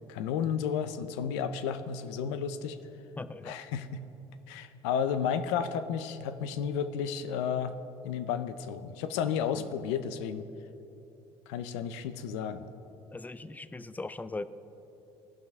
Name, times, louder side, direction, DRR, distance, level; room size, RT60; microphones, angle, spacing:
voice 1, 0.1-2.8 3.5-4.0 4.5-7.7 8.0-10.4 11.5-12.6, left 7 dB, 85° left, 11 dB, 0.5 m, -32 dB
voice 2, 3.2-3.6 9.6-9.7 13.1-14.4, left 3 dB, 10° left, 14 dB, 0.4 m, -39 dB
15.5 x 5.9 x 3.5 m, 3.0 s
supercardioid pair, 75°, 14 cm